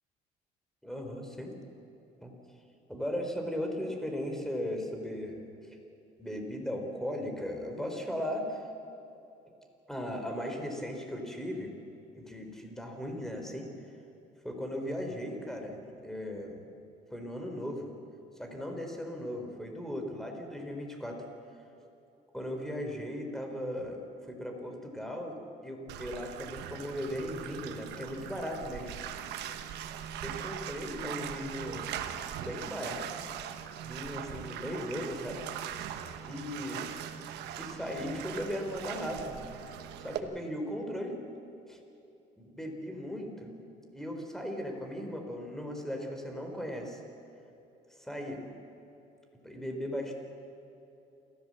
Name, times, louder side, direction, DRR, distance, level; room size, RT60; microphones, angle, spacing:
voice 1, 0.8-1.5 2.2-2.3 2.9-5.4 6.2-8.6 9.9-11.7 12.2-13.7 14.4-16.6 17.1-17.9 18.4-21.2 22.3-24.0 24.3-28.9 30.2-33.3 33.8-35.5 36.2-36.9 37.6-39.4 40.0-41.2 41.7-41.8 42.4-43.6 43.9-47.0 48.0-48.4 49.4-50.1, equal, ahead, 3 dB, 3.7 m, -37 dB
Bathtub (filling or washing), 25.9-40.2, right 9 dB, 80° right, 1.2 m, -40 dB
28.5 x 14.0 x 7.6 m, 2.8 s
cardioid pair, 110°, 17 cm